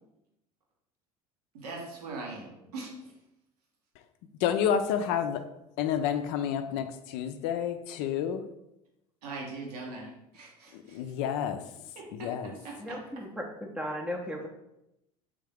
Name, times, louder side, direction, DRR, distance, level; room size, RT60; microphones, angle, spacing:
voice 1, 1.5-3.1 9.2-11.1 11.9-13.0, right 3 dB, 80° right, -1 dB, 1.1 m, -41 dB
voice 2, 4.4-5.5 5.8-8.4 10.7-11.7 12.2-12.5, left 8 dB, 60° left, 8 dB, 0.4 m, -29 dB
voice 3, 12.8-14.5, equal, 5° right, 0 dB, 0.5 m, -36 dB
3.7 x 3.5 x 3.4 m, 0.86 s
hypercardioid pair, 75°, 20 cm